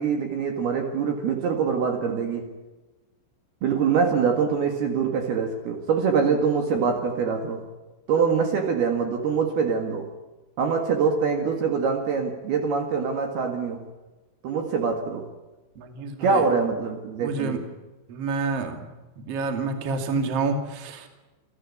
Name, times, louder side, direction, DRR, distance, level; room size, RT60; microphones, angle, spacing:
voice 1, 0.0-2.5 3.6-7.6 8.1-10.1 10.6-13.8 14.4-15.3 16.2-17.6, right 5 dB, 60° right, 4 dB, 3.3 m, -24 dB
voice 2, 15.8-16.5 17.2-17.6 18.1-18.9 19.2-21.1, right 4 dB, 40° right, 5 dB, 2.5 m, -28 dB
28.5 x 13.5 x 8.5 m, 1.1 s
omnidirectional pair, 5.9 m